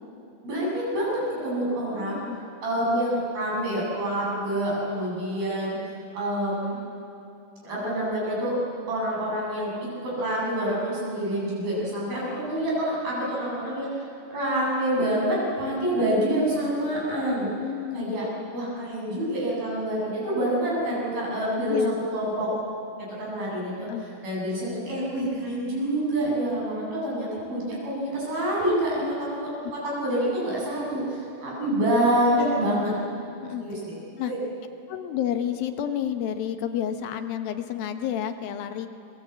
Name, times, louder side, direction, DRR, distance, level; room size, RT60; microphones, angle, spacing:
voice 1, 0.4-2.2 2.6-5.8 6.1-6.8 7.6-8.6 8.9-14.0 14.3-17.5 17.9-18.2 18.5-22.5 23.0-23.9 24.2-29.0 29.3-29.5 29.8-32.9 33.6-34.0 34.3-34.4, right 1 dB, 70° right, -5 dB, 10.0 m, -27 dB
voice 2, 1.7-2.4 15.8-15.9 17.6-18.3 20.9-21.0 21.7-21.9 23.9-24.0 29.0-29.7 33.4-33.6 34.2-34.3 34.9-38.9, left 10 dB, 75° left, 7 dB, 2.9 m, -31 dB
28.5 x 22.5 x 8.4 m, 2.7 s
omnidirectional pair, 4.3 m